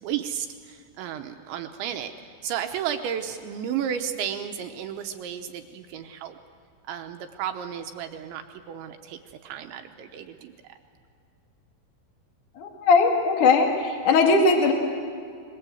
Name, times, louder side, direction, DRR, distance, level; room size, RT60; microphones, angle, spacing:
voice 1, 0.0-6.4 6.9-8.4 8.7-10.5, right 9 dB, 75° right, 6 dB, 2.9 m, -33 dB
voice 2, 12.6-14.7, left 4 dB, 50° left, 2 dB, 2.8 m, -19 dB
25.5 x 22.5 x 7.8 m, 2.3 s
omnidirectional pair, 5.7 m